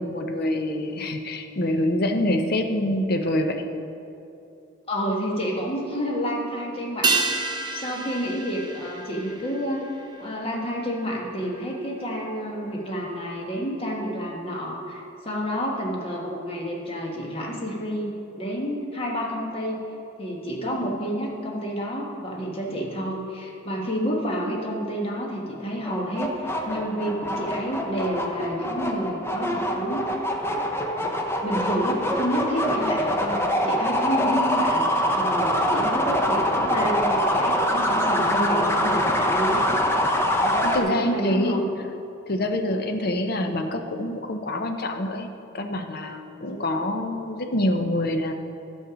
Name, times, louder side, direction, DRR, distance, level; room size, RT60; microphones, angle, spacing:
voice 1, 0.0-3.6 40.6-41.6 42.3-45.3 45.5-48.3, left 1 dB, 50° left, 5 dB, 0.7 m, -26 dB
voice 2, 4.9-9.9 10.2-19.8 20.2-30.1 31.0-31.1 31.4-39.6 40.2-41.6 46.5-46.9, equal, 30° left, -2 dB, 1.5 m, -29 dB
sound 1, 7.0-11.8 12.0-12.1, right 4 dB, 20° right, 0.6 m, -30 dB
sound 2, 25.8-40.8, equal, 10° left, 0.7 m, -24 dB
12.0 x 6.5 x 5.1 m, 2.8 s
head